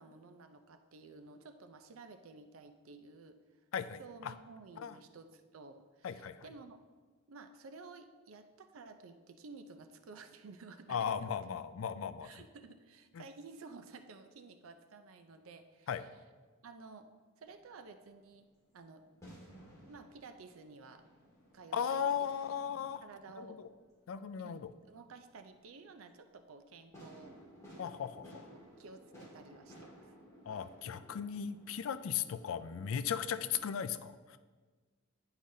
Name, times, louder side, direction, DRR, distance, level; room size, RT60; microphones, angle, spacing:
voice 1, 0.0-3.4 4.0-6.8 7.3-11.3 12.2-16.1 16.6-17.1 17.4-18.5 18.7-19.0 19.9-21.0 21.5-22.1 23.0-23.6 24.4-27.4 28.5-30.1, right 4 dB, 80° right, 8 dB, 0.5 m, -53 dB
voice 2, 3.7-4.3 4.8-5.0 6.0-6.5 10.9-12.3 13.1-13.2 15.9-16.0 21.7-23.0 23.4-23.7 24.1-24.7 27.8-28.5 30.5-34.4, left 8 dB, 70° left, 12 dB, 0.4 m, -37 dB
sound 1, 17.4-33.7, equal, 15° left, 2.0 m, -58 dB
10.0 x 4.9 x 2.7 m, 1.4 s
head